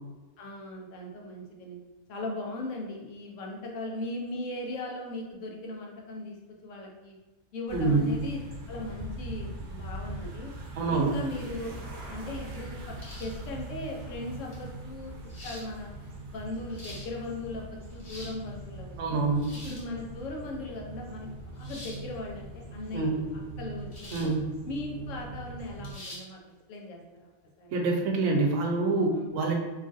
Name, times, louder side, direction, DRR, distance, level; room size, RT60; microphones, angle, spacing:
voice 1, 0.4-1.8 2.1-6.4 6.6-7.2 7.5-8.4 8.7-10.5 10.9-11.8 12.1-12.9 13.2-15.1 15.4-15.9 16.3-19.2 19.6-23.2 23.6-24.3 24.7-26.4 26.7-27.3 27.6-27.7 29.1-29.4, left 2 dB, 90° left, 0 dB, 1.0 m, -38 dB
sound 1, 7.7-25.9, right 2 dB, 60° right, 0.8 m, -41 dB
voice 2, 7.7-8.1 10.8-11.2 19.0-19.5 22.9-23.3 24.1-24.5 27.7-29.5, right 3 dB, 85° right, 1 dB, 1.0 m, -26 dB
sound 2, 13.0-13.5 14.5-14.6 15.3-15.7 16.5-17.1 17.8-18.4 19.4-19.9 21.6-22.0 23.9-24.3 24.7-24.8 25.8-26.3, left 1 dB, 40° left, 0.6 m, -45 dB
3.0 x 2.3 x 2.6 m, 1.2 s
omnidirectional pair, 1.3 m